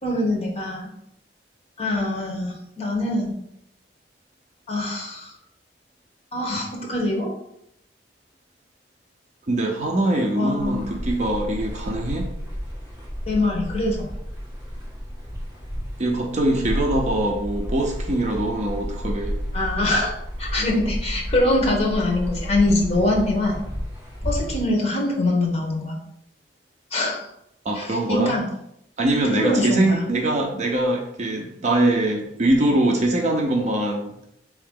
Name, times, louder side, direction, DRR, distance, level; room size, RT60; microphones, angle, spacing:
voice 1, 0.0-0.9 1.8-3.4 4.7-5.3 6.3-7.3 10.3-10.9 13.3-14.1 19.5-20.1 20.4-23.6 24.2-26.0 26.9-27.3 27.7-28.5 29.3-30.0, left 2 dB, 35° left, 0 dB, 1.0 m, -23 dB
voice 2, 9.5-12.3 16.0-19.4 27.6-28.3 29.0-34.1, right 1 dB, 40° right, 1 dB, 0.5 m, -22 dB
sound 1, 10.6-24.6, equal, 15° right, 1.4 m, -31 dB
4.4 x 2.8 x 3.7 m, 0.78 s
head